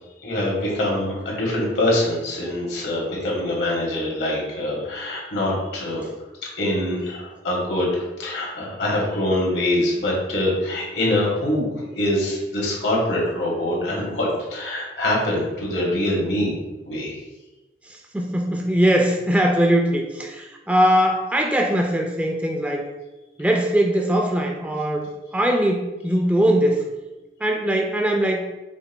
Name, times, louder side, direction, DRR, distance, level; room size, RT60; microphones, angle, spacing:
voice 1, 0.2-6.1 6.6-16.5 16.8-17.1, left 1 dB, 75° left, -4 dB, 1.5 m, -24 dB
voice 2, 17.9-22.8 23.4-26.9 27.4-28.4, right 1 dB, 10° right, 1 dB, 0.3 m, -21 dB
5.2 x 4.2 x 2.2 m, 1.1 s
head